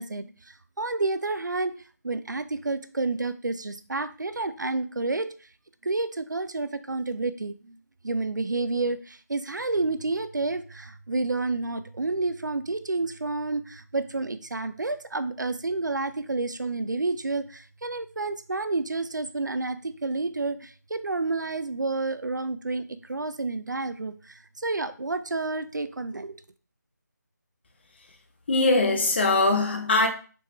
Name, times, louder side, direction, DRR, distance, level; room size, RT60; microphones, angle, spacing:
voice 1, 0.0-1.7 2.0-5.3 5.8-7.8 8.0-26.4, right 3 dB, 85° right, 0.5 m, -30 dB
voice 2, 28.5-30.1, left 2 dB, 35° left, 0.7 m, -21 dB
4.1 x 3.2 x 3.3 m
figure-of-eight pair, 160°, 10 cm